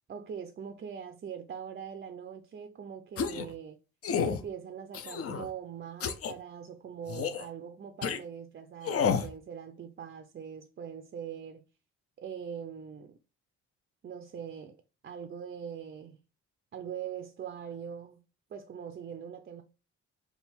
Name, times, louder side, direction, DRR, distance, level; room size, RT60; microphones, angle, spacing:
voice 1, 0.1-3.8 4.2-11.6 12.2-13.2 14.0-16.2 16.7-18.2 18.5-19.6, right 8 dB, 35° right, 0.4 m, -42 dB
sound 1, 3.2-3.5 4.0-4.4 4.9-5.5 6.0-6.3 7.1-7.5 8.0-8.2 8.8-9.3, left 6 dB, 50° left, 0.5 m, -30 dB
3.5 x 2.3 x 4.3 m
cardioid pair, 90°, 30 cm